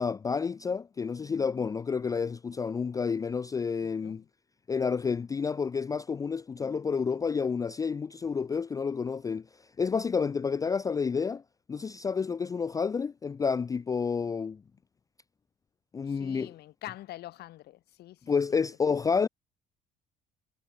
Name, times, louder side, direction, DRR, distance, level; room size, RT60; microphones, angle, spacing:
voice 1, 0.0-4.2 4.7-9.5 9.8-11.4 11.7-14.6 15.9-16.5 18.3-19.3, left 5 dB, 20° left, 0.3 m, -29 dB
voice 2, 3.8-4.3 16.0-18.6 18.9-19.2, left 15 dB, 70° left, 1.5 m, -46 dB
cardioid pair, 110°, 17 cm